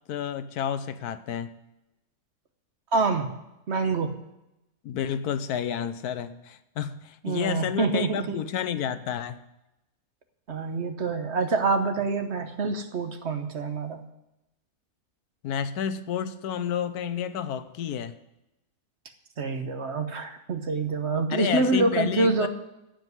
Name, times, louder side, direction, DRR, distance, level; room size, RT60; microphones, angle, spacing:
voice 1, 0.1-1.5 4.8-9.4 15.4-18.1 21.3-22.5, left 8 dB, 85° left, 12 dB, 1.3 m, -30 dB
voice 2, 2.9-3.3 3.7-4.1 7.2-8.4 10.5-14.0 19.4-22.5, right 3 dB, 50° right, 7 dB, 1.2 m, -26 dB
15.0 x 5.2 x 9.3 m, 0.91 s
omnidirectional pair, 1.6 m